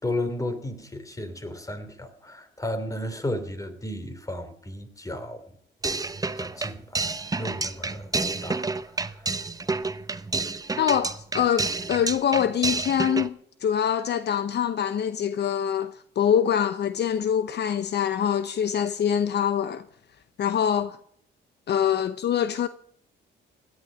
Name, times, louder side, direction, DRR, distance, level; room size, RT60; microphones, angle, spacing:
voice 1, 0.0-5.4 6.3-7.0 7.4-8.1 8.4-8.6 8.9-9.0, left 1 dB, 15° left, 3.1 m, -33 dB
sound 1, 5.8-13.3, right 3 dB, 20° right, 0.9 m, -29 dB
voice 2, 10.8-13.3 13.6-19.8 20.4-21.0 21.7-22.7, left 9 dB, 60° left, 0.8 m, -24 dB
16.5 x 11.5 x 5.1 m
cardioid pair, 90°, 20 cm